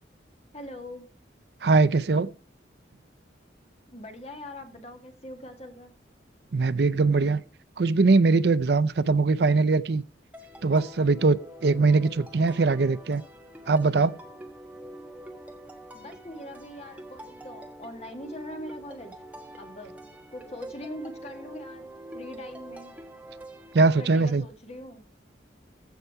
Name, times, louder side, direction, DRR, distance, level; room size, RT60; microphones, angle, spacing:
voice 1, 0.5-1.1 3.9-5.9 15.9-19.2 19.6-22.9 24.0-25.1, left 1 dB, 35° left, 1.9 m, -42 dB
voice 2, 1.6-2.3 6.5-7.4 7.8-10.0 10.6-13.2 13.7-14.1 23.7-24.4, right 3 dB, 60° right, 0.5 m, -21 dB
sound 1, 10.3-24.1, right 1 dB, 10° right, 1.4 m, -45 dB
15.0 x 5.6 x 4.7 m
head